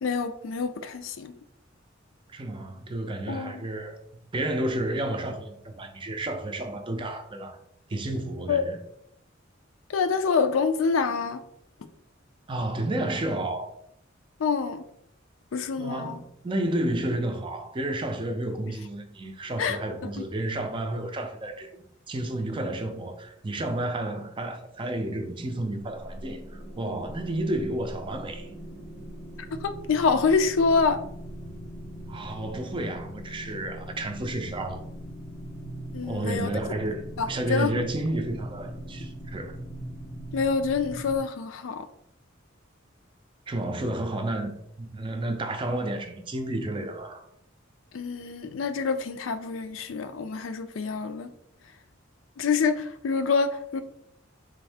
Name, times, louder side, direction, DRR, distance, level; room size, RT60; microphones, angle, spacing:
voice 1, 0.0-1.3 3.3-3.5 8.5-8.6 9.9-11.4 14.4-14.8 15.5-16.2 19.6-19.8 29.6-31.0 35.9-36.7 37.2-37.7 40.3-41.9 47.9-51.3 52.4-53.8, left 5 dB, 80° left, 0.4 m, -26 dB
voice 2, 2.3-4.0 4.3-7.6 7.9-8.8 12.5-13.7 15.8-28.5 32.1-34.8 36.0-39.6 43.5-47.3, right 1 dB, 25° right, 0.4 m, -31 dB
sound 1, 25.7-41.2, equal, 30° left, 0.6 m, -41 dB
3.6 x 2.6 x 3.3 m
head